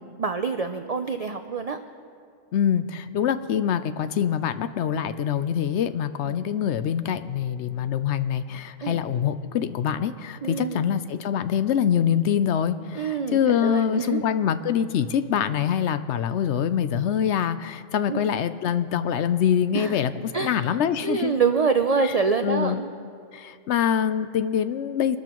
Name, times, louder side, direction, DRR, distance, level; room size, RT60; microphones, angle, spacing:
voice 1, 0.2-1.8 6.2-6.4 8.8-9.1 10.4-10.8 12.9-14.2 18.1-18.2 19.7-20.0 20.3-20.7 21.0-22.9, right 5 dB, 70° right, 7 dB, 0.3 m, -26 dB
voice 2, 2.5-21.3 22.0-22.1 22.4-22.8 23.3-25.2, left 8 dB, 65° left, 12 dB, 0.8 m, -25 dB
25.0 x 13.0 x 3.0 m, 2.3 s
omnidirectional pair, 1.3 m